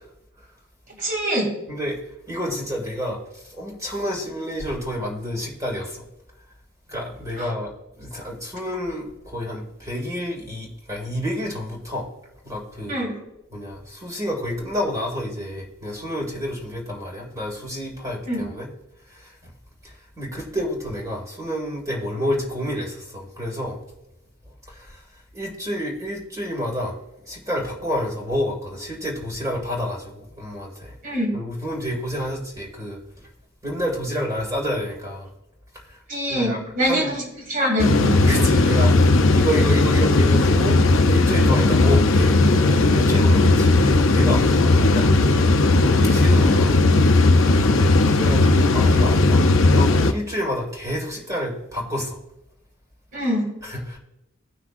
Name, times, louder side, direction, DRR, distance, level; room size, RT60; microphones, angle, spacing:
voice 1, 1.0-1.5 7.4-7.5 12.9-13.2 18.3-18.4 31.0-31.3 36.1-38.2 53.1-53.5, equal, 40° right, 0 dB, 2.7 m, -24 dB
voice 2, 2.3-6.0 6.9-7.7 8.0-12.1 12.4-13.0 13.5-18.7 19.1-19.5 19.8-23.8 24.7-25.0 25.3-27.0 27.2-31.0 31.3-33.0 33.6-35.3 35.7-36.0 36.3-37.1 38.2-40.8 41.1-45.4 45.8-46.8 48.0-49.5 49.7-52.2 53.6-54.0, equal, 15° right, -2 dB, 2.3 m, -29 dB
sound 1, 37.8-50.1, left 2 dB, 70° left, 0.6 m, -16 dB
17.5 x 6.1 x 2.5 m, 0.88 s
head